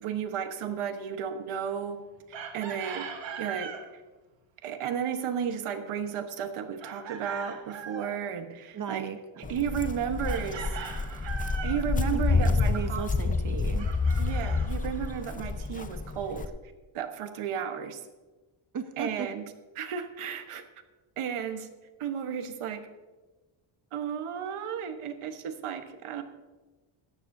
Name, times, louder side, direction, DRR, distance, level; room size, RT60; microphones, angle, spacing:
voice 1, 0.0-2.0 2.3-3.7 4.6-9.1 9.4-10.7 11.6-13.1 14.2-16.5 16.9-18.0 19.0-19.5 19.7-20.6 21.2-21.7 22.0-22.8 23.9-26.2, right 8 dB, 80° right, 7 dB, 1.3 m, -33 dB
Chicken rooster, 2.3-3.8 6.8-8.2 10.3-11.9 13.8-15.3, right 6 dB, 60° right, 1.6 m, -40 dB
voice 2, 8.7-9.5 12.1-13.9 18.7-19.3, right 6 dB, 40° right, 9 dB, 0.7 m, -36 dB
Walk footsteps, 9.4-16.5, left 4 dB, 20° left, 0.4 m, -28 dB
17.0 x 13.5 x 2.7 m, 1.2 s
wide cardioid pair, 170°, 49 cm